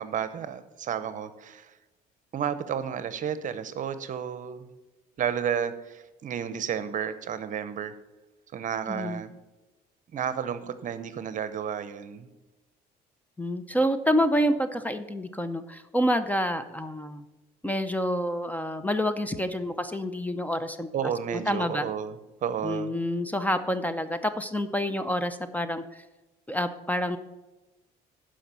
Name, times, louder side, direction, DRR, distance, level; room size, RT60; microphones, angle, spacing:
voice 1, 0.0-1.7 2.3-4.7 5.2-7.9 8.5-9.3 10.1-12.3 20.9-22.9, right 8 dB, 50° right, 13 dB, 0.8 m, -32 dB
voice 2, 8.9-9.2 13.4-17.3 17.6-20.9 21.3-21.9 22.6-26.0 26.5-27.2, equal, 10° left, 11 dB, 0.6 m, -28 dB
11.5 x 5.1 x 6.9 m, 1.1 s
cardioid pair, 110°, 17 cm